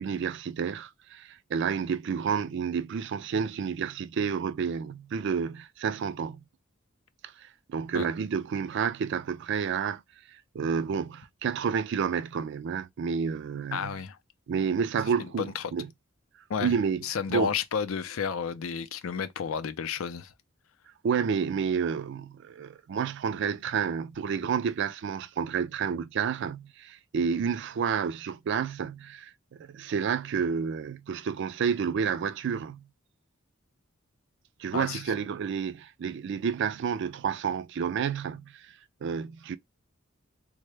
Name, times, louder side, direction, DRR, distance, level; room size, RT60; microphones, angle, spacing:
voice 1, 0.0-6.4 7.4-10.0 10.5-14.0 14.5-15.9 16.6-17.0 17.3-17.5 21.0-32.9 34.6-38.8 39.0-39.6, right 6 dB, 55° right, 0.3 m, -30 dB
voice 2, 13.7-14.2 15.2-15.7 16.5-16.8 17.0-20.3 34.7-35.0, left 7 dB, 80° left, 0.4 m, -32 dB
3.6 x 2.1 x 3.2 m
head